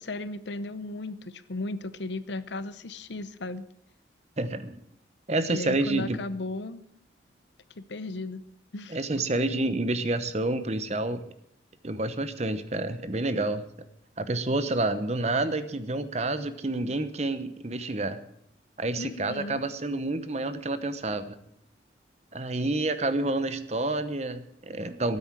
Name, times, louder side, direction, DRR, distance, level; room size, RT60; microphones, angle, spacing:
voice 1, 0.0-3.7 5.5-6.8 7.8-8.5 8.7-9.3 19.0-19.6, left 2 dB, 70° left, 14 dB, 0.8 m, -36 dB
voice 2, 4.4-4.8 5.3-6.2 8.9-11.2 11.8-13.6 14.2-18.2 18.8-21.3 22.3-25.2, right 2 dB, 35° right, 11 dB, 0.9 m, -29 dB
13.0 x 9.6 x 7.5 m, 0.71 s
head